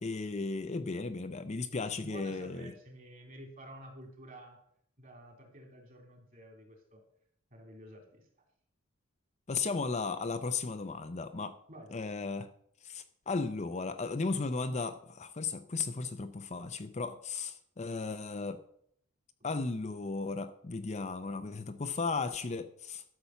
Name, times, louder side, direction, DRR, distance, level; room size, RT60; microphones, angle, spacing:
voice 1, 0.0-2.7 9.5-11.5 11.9-12.5 12.8-18.6 19.4-23.0, left 4 dB, 35° left, 9 dB, 0.6 m, -35 dB
voice 2, 2.0-4.6 5.0-7.0 7.5-8.3 11.7-11.9, right 1 dB, 40° right, 2 dB, 3.1 m, -50 dB
12.5 x 6.9 x 5.7 m, 0.69 s
head